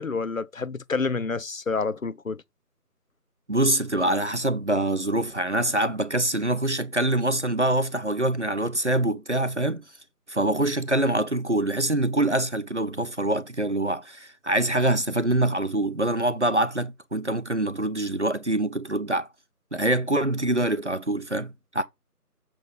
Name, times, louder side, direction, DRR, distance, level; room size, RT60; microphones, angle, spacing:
voice 1, 0.0-2.4, left 4 dB, 60° left, 0.6 m, -28 dB
voice 2, 3.5-9.8 10.3-19.3 19.7-21.8, right 1 dB, 50° right, 0.5 m, -25 dB
6.9 x 5.8 x 3.7 m
figure-of-eight pair, 170°, 47 cm